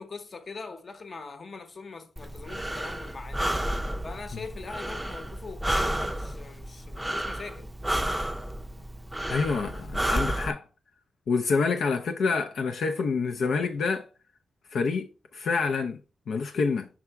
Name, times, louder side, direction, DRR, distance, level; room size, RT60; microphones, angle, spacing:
voice 1, 0.0-3.5 4.0-7.7, left 4 dB, 45° left, 0.9 m, -42 dB
Breathing, 2.2-10.5, right 1 dB, 10° right, 0.5 m, -31 dB
voice 2, 9.3-10.6 11.3-14.1 14.7-16.0 16.3-16.9, left 4 dB, 75° left, 0.5 m, -27 dB
5.9 x 3.5 x 4.5 m
cardioid pair, 105°, 0 cm